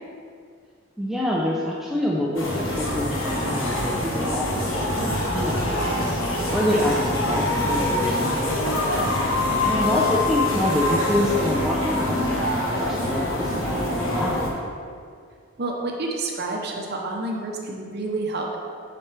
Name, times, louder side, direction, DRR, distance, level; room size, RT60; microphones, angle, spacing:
voice 1, 1.0-6.0 6.5-8.6 9.6-14.5, left 1 dB, ahead, -5 dB, 0.5 m, -27 dB
sound 1, 2.4-14.5, left 1 dB, 85° left, 1.2 m, -24 dB
voice 2, 15.6-18.6, right 2 dB, 55° right, 0 dB, 0.8 m, -29 dB
7.5 x 5.9 x 3.3 m, 2.2 s
head